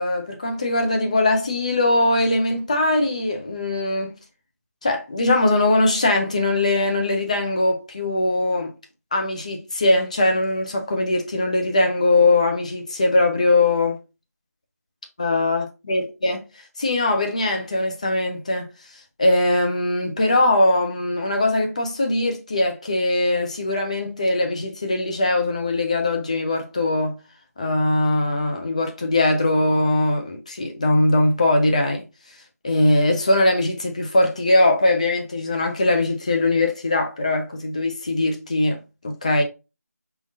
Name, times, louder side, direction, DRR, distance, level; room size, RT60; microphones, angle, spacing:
voice 1, 0.0-4.1 4.8-8.7 9.1-14.0 15.2-16.4 16.8-18.7 19.2-27.1 27.6-32.0 32.6-38.8 39.0-39.4, left 2 dB, 25° left, 0.6 m, -21 dB
4.5 x 3.7 x 2.6 m
figure-of-eight pair, 170°, 9 cm